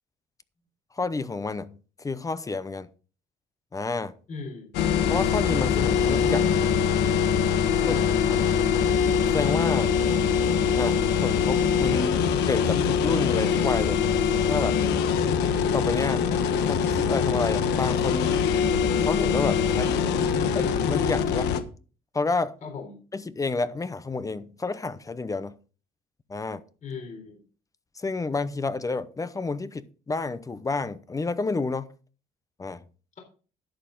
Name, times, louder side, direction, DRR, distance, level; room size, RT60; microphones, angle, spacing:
voice 1, 0.9-2.9 3.7-4.1 5.1-6.7 7.8-8.0 8.3-8.4 9.3-9.9 10.7-12.2 12.5-14.0 14.5-14.8 15.7-16.3 16.6-18.4 19.0-21.5 22.1-22.5 23.1-25.6 26.3-26.6 28.0-31.9 32.6-32.8, left 3 dB, 20° left, 0.7 m, -30 dB
voice 2, 4.3-4.7 7.7-8.2 22.6-23.0 26.8-27.4, left 4 dB, 50° left, 3.6 m, -38 dB
sound 1, 4.7-21.6, left 7 dB, 90° left, 1.1 m, -23 dB
11.5 x 8.4 x 3.8 m
cardioid pair, 110°, 17 cm